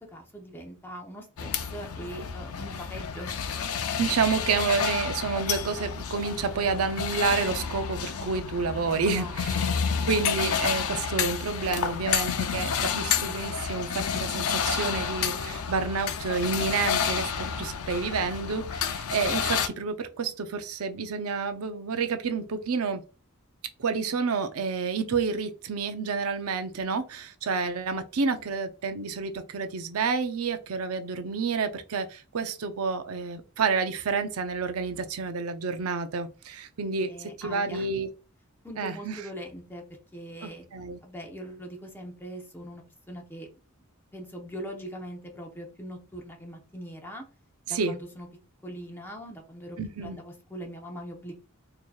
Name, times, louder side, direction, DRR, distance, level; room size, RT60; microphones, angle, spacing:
voice 1, 0.1-3.4 9.2-9.7 37.0-37.9 38.6-39.8 40.1-40.6 41.0-43.5 44.1-47.2 47.7-48.3 48.6-51.3, equal, 10° left, 0.8 m, -41 dB
sound 1, 1.4-19.7, left 7 dB, 85° left, 0.5 m, -30 dB
voice 2, 4.0-9.6 10.0-23.0 23.8-38.1 38.8-39.2 40.4-41.0 47.7-47.9 49.8-50.2, right 5 dB, 85° right, 0.5 m, -29 dB
4.5 x 2.9 x 2.3 m
head